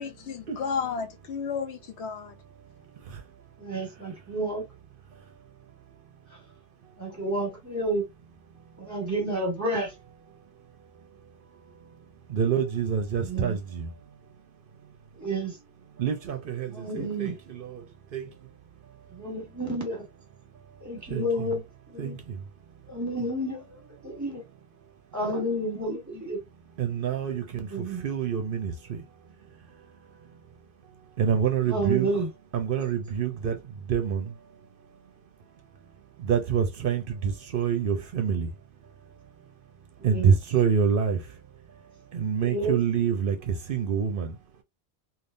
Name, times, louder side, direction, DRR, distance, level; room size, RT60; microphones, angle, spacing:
voice 1, 0.0-2.3, left 6 dB, 85° left, 0.9 m, -32 dB
voice 2, 3.6-4.6 7.0-8.0 8.8-9.9 13.2-13.6 15.1-15.6 16.7-17.4 19.1-20.1 20.8-22.2 22.9-24.4 25.1-26.4 27.5-28.0 31.7-32.3 40.0-40.3 42.4-42.8, right 1 dB, 15° right, 1.4 m, -30 dB
voice 3, 12.3-13.9 16.0-17.8 18.1-18.3 21.1-21.5 22.0-22.4 26.8-27.7 28.0-29.0 31.2-32.1 32.5-33.6 33.9-34.3 36.2-38.5 40.0-41.2 42.1-44.3, right 7 dB, 60° right, 0.7 m, -26 dB
3.4 x 2.4 x 2.5 m
omnidirectional pair, 1.1 m